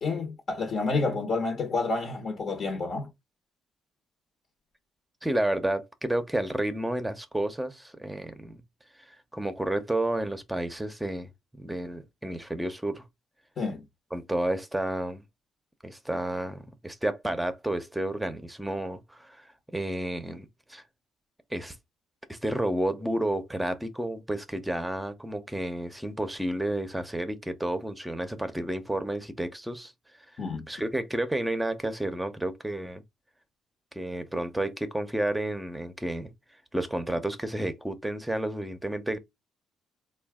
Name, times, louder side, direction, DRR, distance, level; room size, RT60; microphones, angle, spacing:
voice 1, 0.0-3.1 13.6-13.8 30.4-30.6, left 3 dB, 55° left, 1.0 m, -29 dB
voice 2, 5.2-8.6 9.0-11.3 11.6-13.0 14.1-15.2 15.8-20.8 21.5-21.8 22.3-29.9 30.7-33.0 33.9-36.3 36.7-39.2, right 1 dB, 5° right, 0.8 m, -31 dB
3.8 x 2.3 x 3.5 m
cardioid pair, 90°, 0 cm